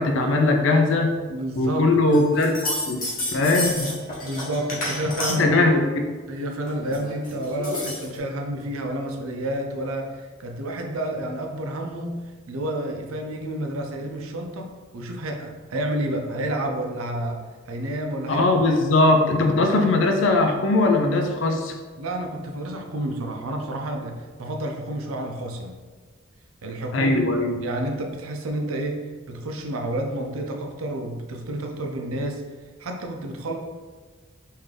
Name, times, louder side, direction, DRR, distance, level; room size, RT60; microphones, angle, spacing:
voice 1, 0.0-1.1 1.6-3.0 3.3-3.9 5.4-6.0 18.3-21.7 26.9-27.6, left 2 dB, 65° left, 4 dB, 0.4 m, -20 dB
voice 2, 1.3-2.3 4.2-5.7 6.3-18.5 19.4-19.6 22.0-25.8 26.6-27.3 27.6-29.0 29.3-32.4 32.8-33.6, right 1 dB, 90° right, 3 dB, 0.5 m, -30 dB
sound 1, 2.1-5.6 6.7-8.2, left 1 dB, 40° left, 1.0 m, -30 dB
3.6 x 2.6 x 3.3 m, 1.4 s
head